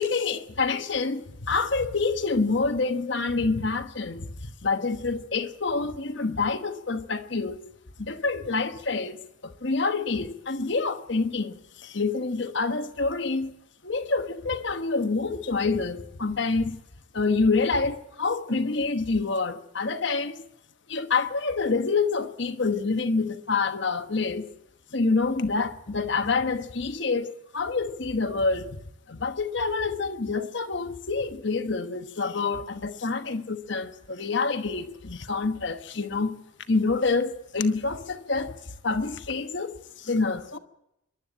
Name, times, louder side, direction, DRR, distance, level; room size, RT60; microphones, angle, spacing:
voice 1, 0.0-4.3 4.6-7.6 8.0-13.5 13.8-16.8 17.1-20.4 20.9-24.5 24.9-28.7 29.1-36.4 36.7-38.5 38.8-40.6, left 4 dB, 55° left, 1.1 m, -27 dB
26.5 x 12.0 x 8.9 m
head